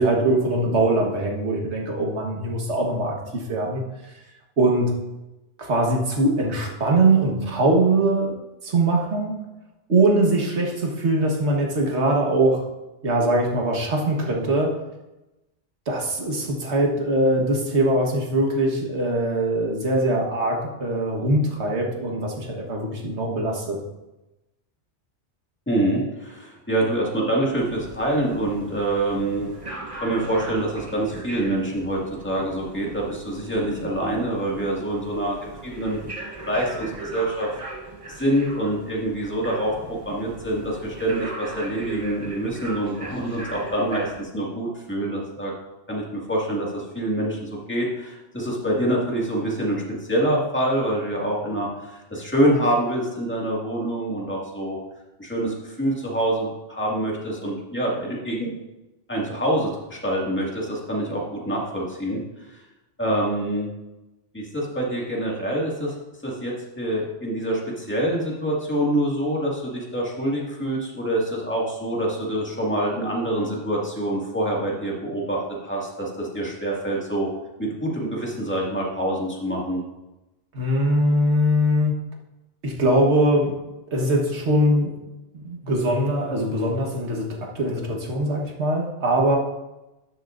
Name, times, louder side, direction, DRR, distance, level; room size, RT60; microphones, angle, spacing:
voice 1, 0.0-4.1 4.6-4.9 5.6-8.3 8.6-9.4 9.9-12.6 13.0-14.8 15.9-23.8 80.5-81.9 82.6-83.6 83.9-84.9 85.3-89.4, right 1 dB, 70° right, 0 dB, 1.7 m, -22 dB
voice 2, 25.7-29.5 30.0-35.4 35.6-36.0 36.5-37.5 38.1-45.5 45.9-49.8 50.1-54.8 55.2-58.5 59.1-62.6 63.0-63.7 64.3-65.9 66.2-77.3 77.6-79.8, right 1 dB, 10° left, -4 dB, 2.0 m, -26 dB
sound 1, 27.5-44.2, right 2 dB, 30° right, 1.1 m, -38 dB
12.5 x 7.7 x 2.6 m, 1.0 s
omnidirectional pair, 1.2 m